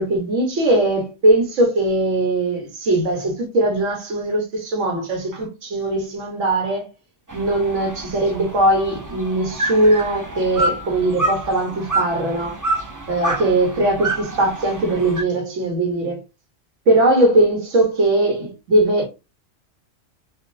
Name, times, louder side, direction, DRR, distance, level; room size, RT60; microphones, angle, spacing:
voice 1, 0.0-6.8 7.3-12.5 13.1-16.2 16.9-19.1, right 1 dB, 85° right, 1.4 m, -20 dB
sound 1, 7.3-15.2, right 2 dB, 30° right, 0.3 m, -27 dB
3.5 x 2.6 x 2.6 m
omnidirectional pair, 1.2 m